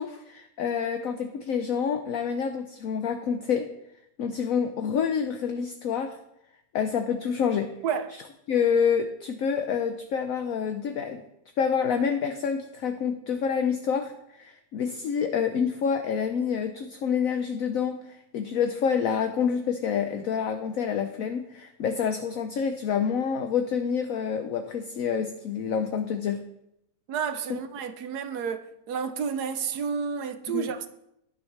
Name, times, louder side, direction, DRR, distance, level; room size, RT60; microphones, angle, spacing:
voice 1, 0.0-3.7 4.2-6.1 6.7-7.7 8.5-11.2 11.6-26.4 30.5-30.7, left 7 dB, 65° left, 1.0 m, -27 dB
voice 2, 27.1-30.9, right 7 dB, 75° right, 1.3 m, -30 dB
12.0 x 11.0 x 3.3 m
omnidirectional pair, 1.8 m